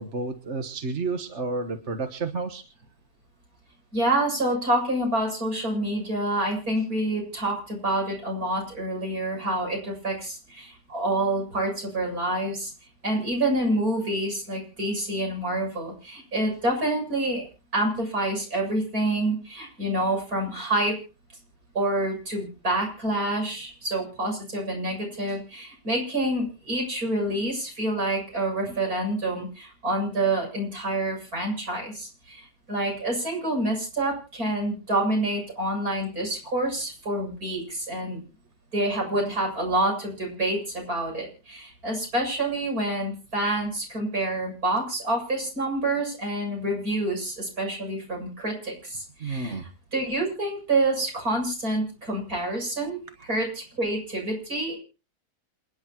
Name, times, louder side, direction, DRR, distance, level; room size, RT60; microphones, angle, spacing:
voice 1, 0.0-2.6 49.2-49.6, right 3 dB, 45° right, 6 dB, 1.5 m, -31 dB
voice 2, 3.9-12.7 13.0-17.5 17.7-20.9 21.7-38.2 38.7-54.8, right 1 dB, 65° right, 1 dB, 8.0 m, -27 dB
28.0 x 10.5 x 3.0 m, 0.34 s
omnidirectional pair, 1.7 m